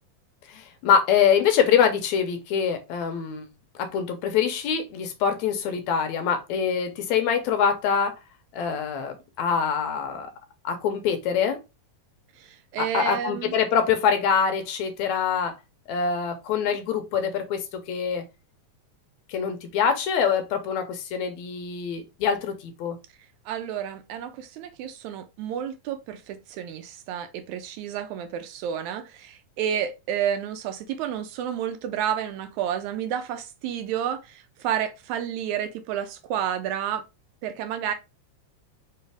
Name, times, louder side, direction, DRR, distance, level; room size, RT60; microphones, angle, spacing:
voice 1, 0.5-3.5 3.8-8.2 8.5-10.3 10.6-11.6 12.8-15.6 15.9-18.3 19.3-23.0, left 7 dB, 75° left, 1.9 m, -24 dB
voice 2, 12.4-13.5 23.5-37.0 37.4-37.9, right 9 dB, 80° right, 1.8 m, -30 dB
4.7 x 3.2 x 3.3 m
omnidirectional pair, 3.5 m